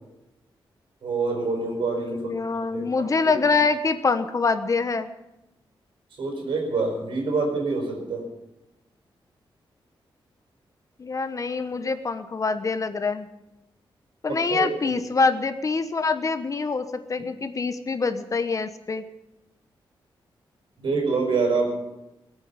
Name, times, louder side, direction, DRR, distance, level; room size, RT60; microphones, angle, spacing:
voice 1, 1.0-3.3 6.2-8.3 14.3-14.9 20.8-21.7, right 4 dB, 70° right, 0 dB, 4.6 m, -26 dB
voice 2, 2.0-5.1 11.0-13.3 14.2-19.0, left 4 dB, 40° left, 9 dB, 1.1 m, -25 dB
21.5 x 8.4 x 6.8 m, 0.94 s
wide cardioid pair, 115°, 9 cm